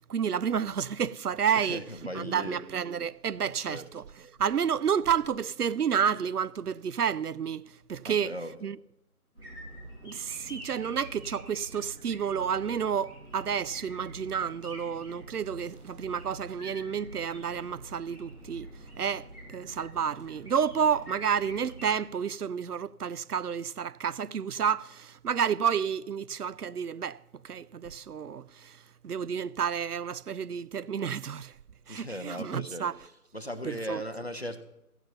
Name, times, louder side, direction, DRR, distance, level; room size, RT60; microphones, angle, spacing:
voice 1, 0.1-1.8 2.1-4.0 4.4-7.6 7.9-8.3 8.6-8.8 10.0-18.7 19.0-19.3 19.5-27.2 27.4-28.8 29.0-31.5 31.9-32.9 33.6-34.0, right 7 dB, 85° right, 0.5 m, -30 dB
voice 2, 1.5-2.6 3.4-3.8 8.0-8.6 31.9-32.9 33.3-34.6, equal, 45° left, 0.8 m, -38 dB
sound 1, 9.3-22.0, right 1 dB, 40° right, 5.7 m, -46 dB
15.0 x 6.9 x 5.8 m
figure-of-eight pair, 170°, 45 cm